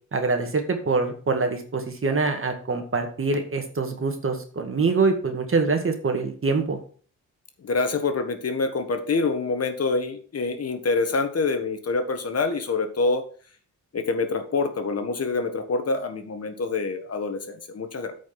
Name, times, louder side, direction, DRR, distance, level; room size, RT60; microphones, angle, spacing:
voice 1, 0.1-6.8, right 4 dB, 40° right, 5 dB, 2.0 m, -24 dB
voice 2, 7.6-13.2 13.9-18.1, left 3 dB, 50° left, 7 dB, 1.6 m, -26 dB
8.7 x 5.2 x 5.9 m, 0.43 s
cardioid pair, 90°, 32 cm